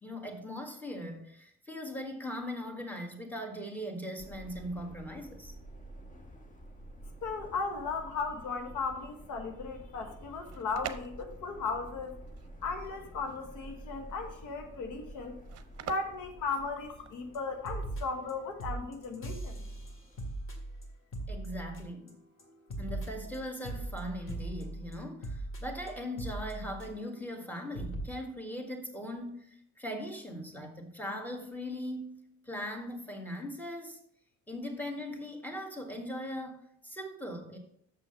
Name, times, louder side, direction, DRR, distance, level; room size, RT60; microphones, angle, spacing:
voice 1, 0.0-5.5 21.3-22.1 22.8-34.0 34.5-37.6, equal, 5° left, 2 dB, 1.6 m, -40 dB
Subway metro underground, 4.2-20.3, right 1 dB, 25° left, 1.2 m, -50 dB
voice 2, 7.2-12.2 12.6-15.4 15.8-19.6, left 4 dB, 90° left, 5 dB, 1.2 m, -36 dB
sound 1, 10.4-17.3, right 10 dB, 55° right, 0.7 m, -46 dB
sound 2, 17.3-17.4 17.6-18.3 18.6-22.1 22.4-27.2 27.5-27.6 27.7-28.0, right 2 dB, 45° left, 2.0 m, -39 dB
6.9 x 5.9 x 5.5 m, 0.70 s
cardioid pair, 90°, 30 cm